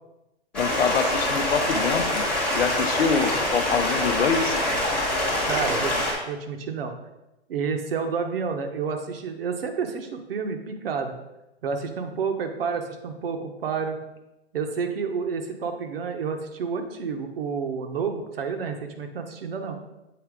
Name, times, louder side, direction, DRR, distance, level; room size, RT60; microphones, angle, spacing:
voice 1, 0.5-2.3 2.5-4.6, left 6 dB, 65° left, 9 dB, 0.7 m, -25 dB
Stream, 0.5-6.1, left 1 dB, 5° left, 1.2 m, -25 dB
voice 2, 5.5-5.9 6.3-6.9 7.5-11.2 11.6-14.0 14.5-19.8, right 5 dB, 60° right, 6 dB, 1.0 m, -29 dB
7.9 x 4.4 x 3.6 m, 0.96 s
hypercardioid pair, 155°, 33 cm